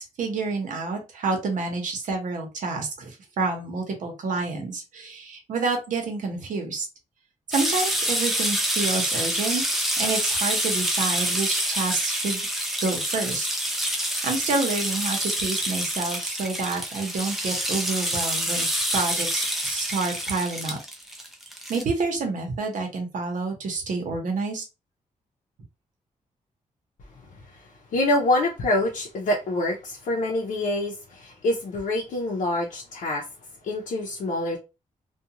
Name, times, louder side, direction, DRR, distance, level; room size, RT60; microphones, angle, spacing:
voice 1, 0.0-6.9 7.5-9.6 10.0-12.5 12.8-13.5 13.8-18.7 18.9-20.8 21.7-24.6, right 3 dB, 70° right, 0.9 m, -28 dB
sound 1, 7.5-21.8, equal, ahead, 0.4 m, -27 dB
voice 2, 27.2-33.3 33.6-34.6, left 1 dB, 70° left, 0.6 m, -26 dB
2.4 x 2.3 x 2.8 m
wide cardioid pair, 165°, 14 cm